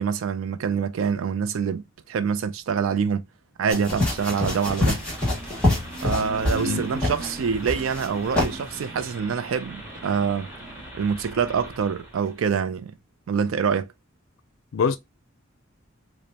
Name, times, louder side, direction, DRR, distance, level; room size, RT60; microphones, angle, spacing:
voice 1, 0.0-3.2 3.6-5.0 6.0-10.5 10.9-12.9 13.3-13.9, right 6 dB, 85° right, 0.4 m, -25 dB
sound 1, 3.7-6.7 7.0-7.3 7.6-8.1 8.3-8.5, left 1 dB, 5° left, 1.7 m, -25 dB
sound 2, 4.1-12.4, equal, 10° right, 1.6 m, -42 dB
sound 3, 4.9-10.9, right 1 dB, 40° right, 0.9 m, -40 dB
voice 2, 6.4-6.8 14.7-15.0, left 6 dB, 85° left, 0.4 m, -25 dB
5.1 x 2.1 x 2.8 m
head